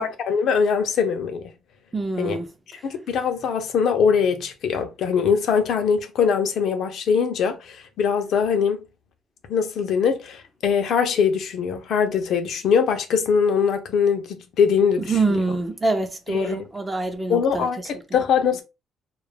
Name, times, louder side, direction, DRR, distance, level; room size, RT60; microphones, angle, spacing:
voice 1, 0.0-1.4 2.2-2.4 2.8-8.8 9.5-15.4 16.3-16.6 17.3-18.6, left 6 dB, 70° left, 0.5 m, -22 dB
voice 2, 1.9-2.5 15.0-17.7, right 3 dB, 20° right, 0.6 m, -25 dB
2.3 x 2.1 x 3.3 m
cardioid pair, 100°, 0 cm